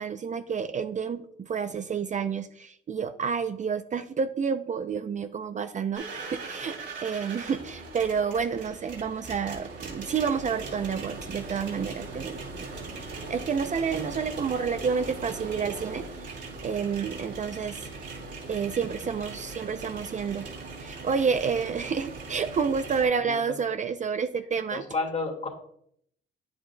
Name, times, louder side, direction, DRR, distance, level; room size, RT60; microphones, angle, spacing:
voice 1, 0.0-6.1 6.3-12.7 13.3-17.8 18.5-20.5 20.8-24.8, right 6 dB, 40° right, 9 dB, 0.5 m, -29 dB
sound 1, 5.9-23.1, right 3 dB, 65° right, 3.0 m, -40 dB
voice 2, 23.0-23.6 24.7-25.5, left 3 dB, 35° left, 1 dB, 2.1 m, -32 dB
9.3 x 7.7 x 2.2 m, 0.69 s
cardioid pair, 90°, 20 cm